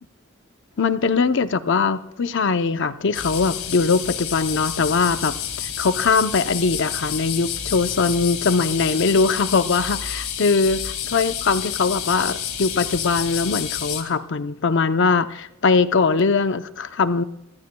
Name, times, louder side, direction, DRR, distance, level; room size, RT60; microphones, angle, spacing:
voice 1, 0.8-5.3 5.8-17.2, left 4 dB, 60° left, 11 dB, 0.7 m, -21 dB
sound 1, 3.1-14.0, left 9 dB, 80° left, 2.3 m, -29 dB
25.0 x 15.0 x 2.2 m, 0.89 s
head